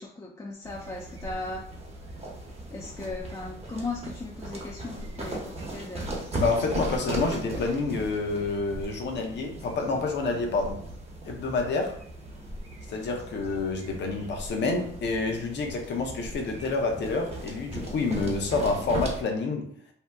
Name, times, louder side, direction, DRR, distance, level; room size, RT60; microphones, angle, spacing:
voice 1, 0.0-1.6 2.7-6.1, left 3 dB, 15° left, -2 dB, 0.4 m, -37 dB
sound 1, 0.6-19.2, right 1 dB, 30° right, 0.9 m, -38 dB
voice 2, 6.4-10.8 11.3-12.0 12.9-19.7, left 3 dB, 60° left, 3 dB, 0.8 m, -28 dB
2.7 x 2.1 x 3.4 m, 0.62 s
cardioid pair, 90°, 20 cm